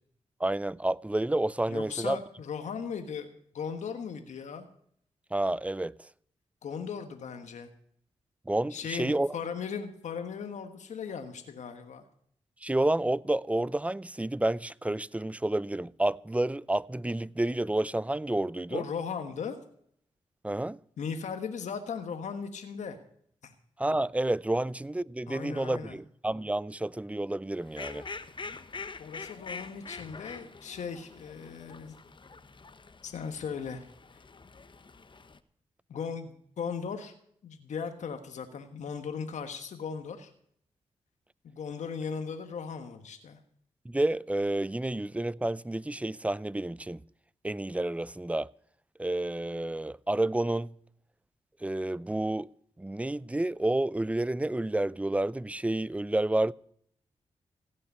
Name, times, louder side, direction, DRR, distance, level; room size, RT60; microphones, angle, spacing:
voice 1, 0.4-2.2 5.3-6.0 8.5-9.4 12.6-18.8 20.4-20.8 23.8-28.0 43.9-47.0 47.4-48.5 49.0-50.7 51.6-52.5 52.8-56.5, right 1 dB, 10° right, 0.5 m, -30 dB
voice 2, 1.7-3.3 3.5-4.7 6.6-7.7 8.7-12.1 18.7-19.6 21.0-23.0 23.4-23.5 25.3-26.0 29.0-31.9 33.0-33.8 35.9-37.1 37.4-40.3 41.4-43.4, left 6 dB, 75° left, 1.3 m, -37 dB
Fowl, 27.6-35.4, left 4 dB, 40° left, 1.0 m, -45 dB
16.0 x 5.6 x 9.5 m
supercardioid pair, 45°, 12 cm